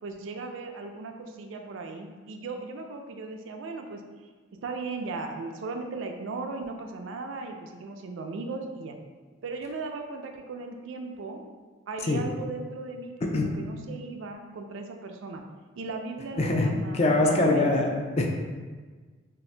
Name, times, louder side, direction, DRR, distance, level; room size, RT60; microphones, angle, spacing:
voice 1, 0.0-4.0 4.5-9.0 9.4-11.4 11.9-15.4 15.8-17.7, right 3 dB, 85° right, 4 dB, 0.4 m, -37 dB
voice 2, 16.4-18.3, left 2 dB, 35° left, 1 dB, 0.3 m, -23 dB
2.8 x 2.4 x 3.2 m, 1.4 s
head